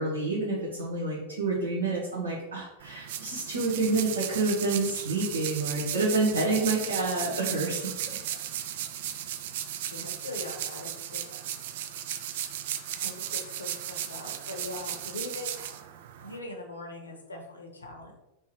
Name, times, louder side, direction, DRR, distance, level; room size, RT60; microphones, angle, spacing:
voice 1, 0.0-7.9, right 3 dB, 75° right, -7 dB, 1.2 m, -28 dB
sound 1, 2.8-16.4, right 10 dB, 55° right, 0.4 m, -36 dB
voice 2, 9.9-11.3 13.0-15.7 16.2-18.2, left 2 dB, 75° left, 2 dB, 0.9 m, -41 dB
3.5 x 3.0 x 4.5 m, 0.97 s
figure-of-eight pair, 90°, 0 cm